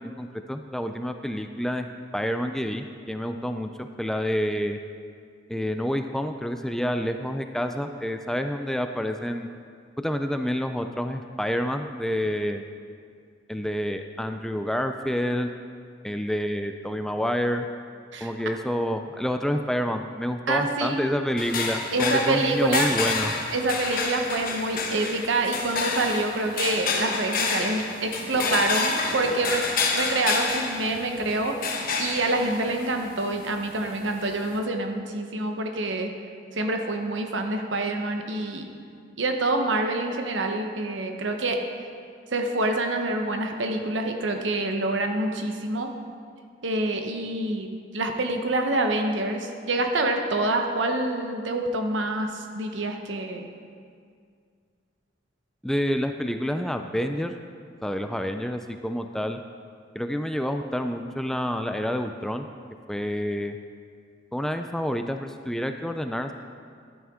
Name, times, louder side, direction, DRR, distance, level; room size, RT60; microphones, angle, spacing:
voice 1, 0.0-1.9 2.1-4.8 5.5-9.5 10.0-12.6 13.5-15.5 16.0-17.7 18.2-23.3 55.6-57.4 57.8-59.4 60.0-62.5 62.9-63.6 64.3-66.3, equal, 5° left, 6 dB, 0.3 m, -28 dB
voice 2, 20.5-21.1 21.9-22.9 23.5-29.6 29.9-31.6 32.0-36.1 36.5-38.7 39.2-41.6 42.3-45.9 46.6-47.7 47.9-53.5, right 2 dB, 75° right, 4 dB, 1.0 m, -26 dB
sound 1, 21.4-34.6, left 4 dB, 50° left, 1.1 m, -29 dB
12.5 x 8.8 x 3.6 m, 2.2 s
head